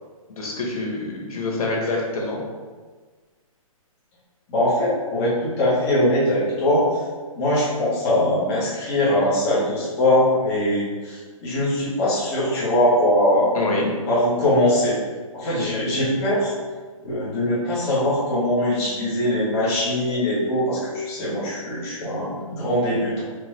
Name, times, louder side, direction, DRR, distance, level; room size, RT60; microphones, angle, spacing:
voice 1, 0.3-2.4 13.5-13.9, left 2 dB, 85° left, -2 dB, 1.2 m, -26 dB
voice 2, 4.5-6.9 7.3-13.5 14.1-15.0 15.3-16.5 17.0-23.2, left 1 dB, 15° left, -9 dB, 0.8 m, -21 dB
4.5 x 2.3 x 3.1 m, 1.4 s
hypercardioid pair, 170°, 18 cm